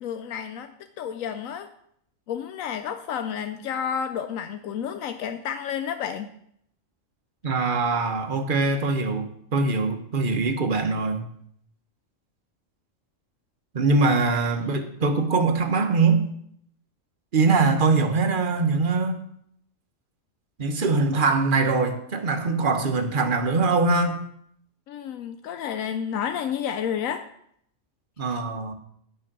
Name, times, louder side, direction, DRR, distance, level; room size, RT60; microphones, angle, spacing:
voice 1, 0.0-0.7 1.0-1.7 2.3-6.3 24.9-27.2, left 8 dB, 85° left, 9 dB, 1.0 m, -30 dB
voice 2, 7.4-11.2 13.7-16.2 17.3-19.2 20.6-24.2 28.2-28.7, right 3 dB, 40° right, 6 dB, 1.1 m, -22 dB
9.9 x 6.3 x 6.0 m, 0.71 s
omnidirectional pair, 1.4 m